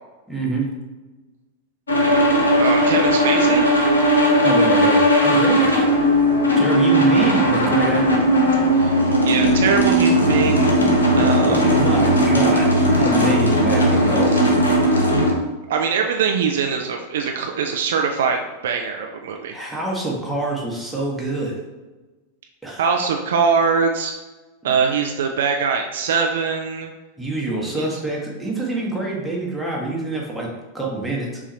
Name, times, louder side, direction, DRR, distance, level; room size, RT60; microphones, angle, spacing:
voice 1, 0.3-0.7 4.4-5.9 6.6-8.2 11.5-12.7 13.0-14.3 19.5-21.6 22.6-22.8 27.2-30.5 30.7-31.4, right 2 dB, 5° right, -4 dB, 1.0 m, -26 dB
sound 1, 1.9-15.3, equal, 75° left, 0.8 m, -17 dB
voice 2, 2.6-3.7 8.7-10.7 11.1-11.7 15.7-19.6 22.8-24.1 24.6-26.9 27.8-27.9, right 5 dB, 60° right, 3 dB, 0.4 m, -22 dB
5.5 x 2.4 x 3.0 m, 1.2 s
figure-of-eight pair, 90°, 0 cm